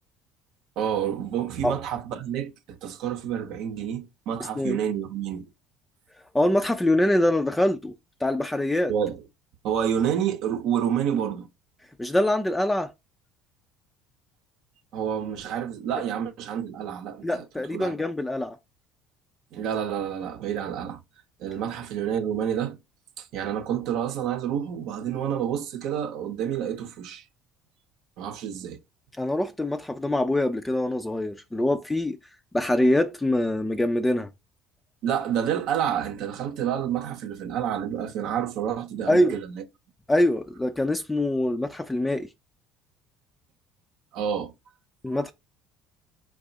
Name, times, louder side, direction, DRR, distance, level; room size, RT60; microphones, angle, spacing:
voice 1, 0.8-5.5 8.9-9.2 9.6-11.5 14.9-17.4 17.7-18.0 19.5-21.0 21.4-22.8 23.2-27.2 28.2-28.8 35.0-39.6 44.1-44.5 45.1-45.3, right 9 dB, 70° right, 0.7 m, -29 dB
voice 2, 6.3-7.9 8.2-8.9 12.0-12.9 17.2-18.6 29.2-32.2 32.5-34.3 39.1-39.4 40.1-42.3 45.0-45.3, left 1 dB, 10° left, 0.4 m, -24 dB
4.6 x 2.4 x 3.8 m
supercardioid pair, 75°, 0 cm